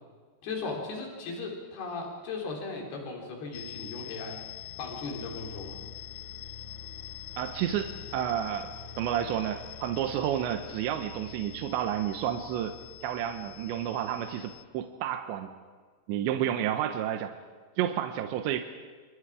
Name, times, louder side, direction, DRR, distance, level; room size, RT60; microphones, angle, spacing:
voice 1, 0.4-4.4 4.8-5.8, left 3 dB, 60° left, 0 dB, 5.7 m, -37 dB
sound 1, 3.5-14.6, left 16 dB, 75° left, 2.2 m, -45 dB
sound 2, 3.9-14.7, left 3 dB, 35° left, 6.3 m, -50 dB
voice 2, 7.4-12.8 13.0-15.5 16.1-17.3 17.8-18.6, right 10 dB, 80° right, 7 dB, 3.2 m, -30 dB
27.0 x 25.5 x 5.0 m, 1.5 s
omnidirectional pair, 5.2 m